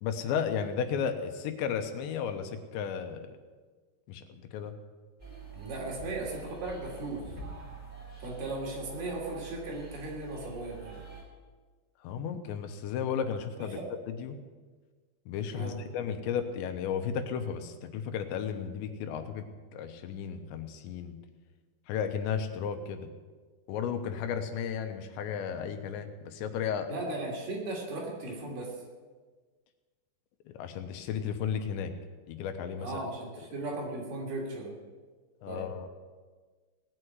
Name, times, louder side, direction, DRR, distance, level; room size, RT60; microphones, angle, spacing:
voice 1, 0.0-3.3 4.1-4.7 12.0-13.8 14.1-14.4 15.3-21.2 21.9-23.1 23.7-26.9 30.5-31.9 32.3-33.0 33.4-33.5 35.4-35.9, left 7 dB, 85° left, 7 dB, 3.3 m, -34 dB
sound 1, 5.2-11.2, right 5 dB, 10° right, 4.4 m, -46 dB
voice 2, 5.5-7.3 8.2-11.0 13.7-13.9 15.5-15.8 26.9-28.8 32.8-34.8 35.5-35.6, right 2 dB, 60° right, -2 dB, 4.7 m, -37 dB
18.5 x 6.4 x 9.4 m, 1.4 s
omnidirectional pair, 5.1 m